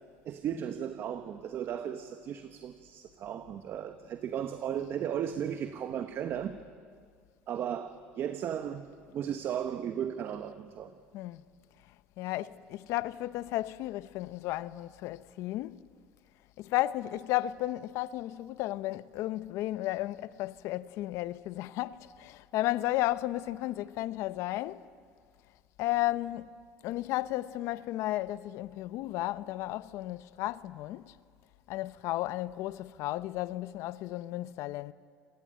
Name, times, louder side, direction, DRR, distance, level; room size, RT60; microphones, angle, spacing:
voice 1, 0.2-6.6 7.5-8.9 9.1-10.9, right 9 dB, 50° right, 1.2 m, -35 dB
voice 2, 12.2-15.9 16.6-24.9 25.8-26.5 26.8-31.2 31.7-34.9, left 16 dB, 70° left, 0.7 m, -33 dB
27.0 x 19.5 x 9.1 m
supercardioid pair, 105°, 5 cm